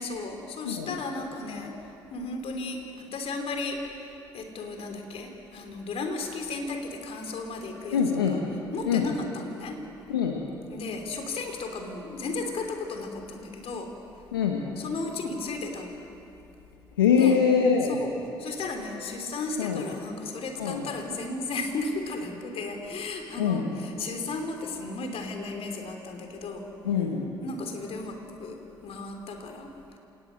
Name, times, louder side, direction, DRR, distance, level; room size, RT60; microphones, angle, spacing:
voice 1, 0.0-1.8 2.1-8.0 8.3-8.4 8.7-9.8 10.7-13.9 14.8-16.0 17.1-17.4 17.8-18.1 18.4-26.6 27.4-30.0, left 3 dB, 55° left, 4 dB, 3.3 m, -35 dB
voice 2, 0.6-0.9 7.9-8.4 8.9-9.1 10.1-10.4 14.3-14.7 17.0-18.0 19.6-19.8 20.6-20.8 23.4-23.7 26.8-27.3, left 6 dB, 90° left, 1 dB, 1.2 m, -24 dB
27.5 x 19.0 x 6.6 m, 2.8 s
hypercardioid pair, 50°, 12 cm